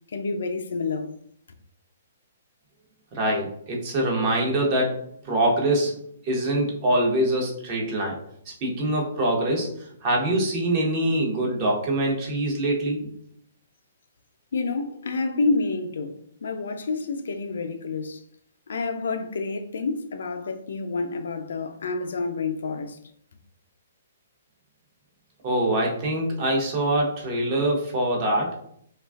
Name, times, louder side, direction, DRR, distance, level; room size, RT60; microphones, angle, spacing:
voice 1, 0.1-1.1 14.5-18.2 18.7-23.0, left 3 dB, 75° left, 0.3 m, -28 dB
voice 2, 3.1-6.0 6.2-8.2 8.5-13.0 25.4-28.5, right 1 dB, 35° right, 0.8 m, -24 dB
2.4 x 2.2 x 2.3 m
hypercardioid pair, 135°, 0 cm